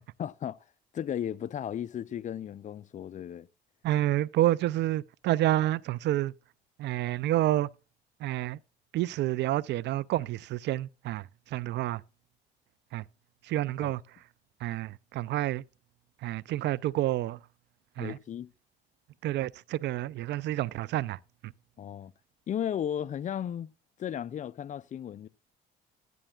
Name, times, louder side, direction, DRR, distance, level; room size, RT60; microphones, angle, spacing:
voice 1, 0.2-0.6 0.9-3.5 13.8-13.9 18.0-18.5 21.8-22.1 22.5-23.7 24.0-25.3, left 9 dB, 40° left, 0.5 m, -35 dB
voice 2, 3.8-6.3 6.8-7.7 8.2-8.6 8.9-11.2 11.5-12.0 12.9-13.0 13.5-14.0 14.6-15.6 16.2-17.4 18.0-18.2 19.2-21.5, right 15 dB, 65° right, 0.4 m, -29 dB
13.0 x 9.9 x 2.4 m
supercardioid pair, 70°, 20 cm